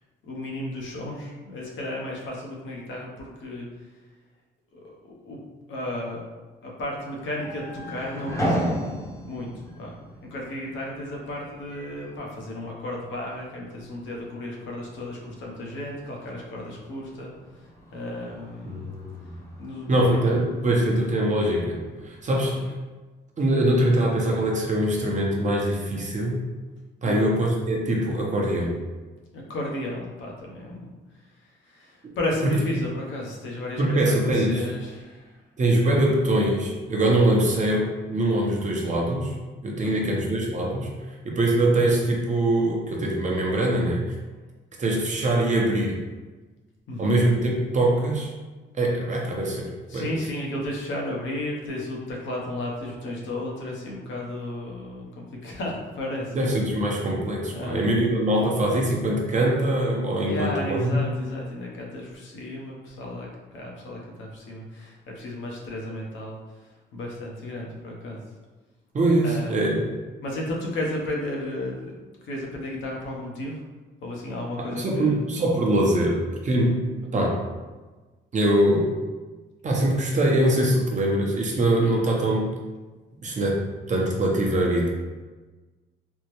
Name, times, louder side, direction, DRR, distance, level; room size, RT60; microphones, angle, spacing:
voice 1, 0.2-3.7 4.7-5.4 5.7-6.2 6.6-8.8 9.3-10.0 10.3-17.3 17.6-18.9 19.6-20.3 22.5-22.7 27.0-27.3 29.3-30.9 31.4-35.4 37.3-37.5 39.8-40.1 46.9-47.2 49.9-56.5 57.5-57.9 60.2-68.2 69.2-69.8 70.2-71.9 72.2-73.6 74.0-75.2 77.2-77.3, left 1 dB, 75° left, -2 dB, 0.8 m, -34 dB
sound 1, 7.0-22.3, equal, 15° left, 0.7 m, -37 dB
voice 2, 18.7-19.4 19.9-21.8 22.1-22.7 23.4-26.4 27.0-28.8 32.4-32.5 33.8-34.6 35.6-39.3 39.6-40.9 41.2-44.0 44.8-46.0 47.0-48.3 48.7-50.1 56.3-61.1 68.9-69.9 74.6-76.8 77.1-77.4 78.3-78.9 79.6-82.5 83.2-84.9, right 1 dB, 40° right, -1 dB, 0.7 m, -23 dB
3.5 x 2.0 x 3.0 m, 1.2 s
cardioid pair, 90°, 20 cm